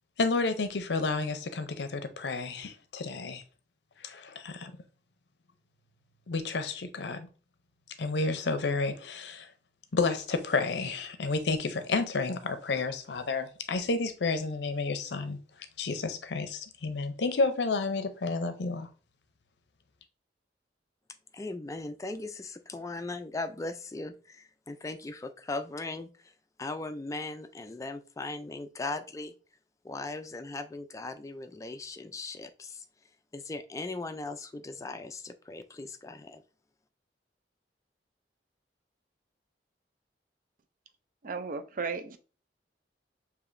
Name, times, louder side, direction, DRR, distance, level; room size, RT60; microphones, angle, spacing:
voice 1, 0.2-3.4 4.0-4.7 6.3-7.3 8.0-9.5 9.9-15.4 15.8-18.9, left 3 dB, 70° left, 0.5 m, -31 dB
voice 2, 21.3-26.3 26.6-29.3 29.8-32.8 33.3-36.4, left 2 dB, 20° left, 0.3 m, -38 dB
voice 3, 41.2-42.2, right 4 dB, 50° right, 0.4 m, -34 dB
6.7 x 2.8 x 2.5 m
head